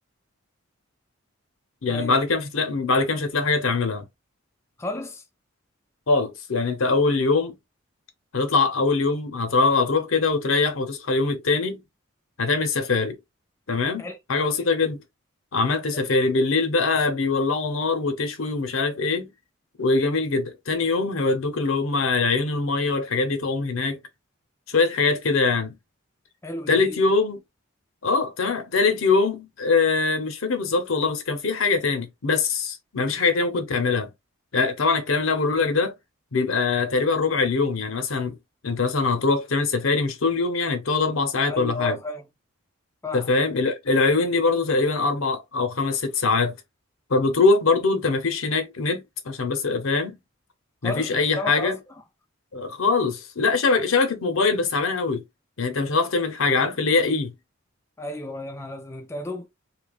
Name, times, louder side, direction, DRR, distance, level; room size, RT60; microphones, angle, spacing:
voice 1, 1.8-4.1 6.1-7.6 8.3-11.8 12.4-13.2 13.7-15.0 15.5-19.3 19.8-24.0 24.7-25.7 26.7-27.4 28.0-34.1 34.5-35.9 36.3-38.4 38.6-42.0 43.1-46.5 47.1-50.2 50.8-51.8 52.5-55.2 55.6-57.3, left 4 dB, 80° left, 0.8 m, -23 dB
voice 2, 4.8-5.3 14.0-14.2 15.9-16.0 26.4-27.0 41.5-42.2 43.0-43.4 50.8-52.0 58.0-59.5, left 2 dB, 15° left, 0.3 m, -33 dB
3.3 x 2.8 x 2.4 m
head